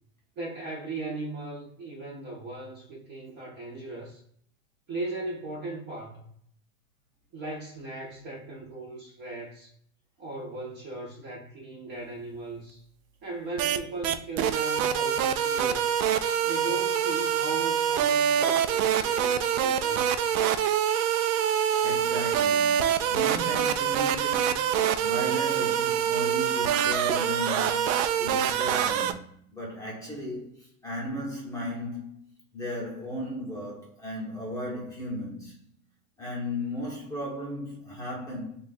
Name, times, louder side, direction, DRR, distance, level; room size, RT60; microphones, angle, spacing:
voice 1, 0.4-4.2 4.9-6.2 7.3-9.7 10.2-12.8 13.2-15.9 16.4-20.4, right 3 dB, 25° right, 0.6 m, -38 dB
sound 1, 13.6-13.8 14.0-29.1, right 9 dB, 85° right, 0.5 m, -25 dB
voice 2, 21.8-32.2 32.5-35.6 36.2-38.6, left 1 dB, 10° left, 0.8 m, -36 dB
3.2 x 2.4 x 4.0 m
supercardioid pair, 160°, 42 cm